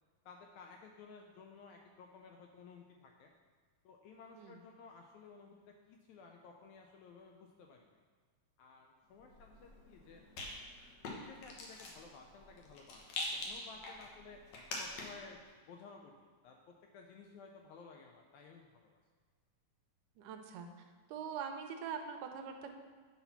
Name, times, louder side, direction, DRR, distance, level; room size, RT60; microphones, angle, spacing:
voice 1, 0.3-3.3 3.9-8.0 8.6-10.2 11.0-14.4 14.7-19.0, left 5 dB, 80° left, 2 dB, 1.7 m, -56 dB
Rattle, 9.2-15.3, left 2 dB, 65° left, 2.1 m, -45 dB
voice 2, 20.2-20.7 21.1-22.7, right 7 dB, 80° right, 5 dB, 2.1 m, -43 dB
8.4 x 4.1 x 5.7 m, 1.6 s
omnidirectional pair, 3.8 m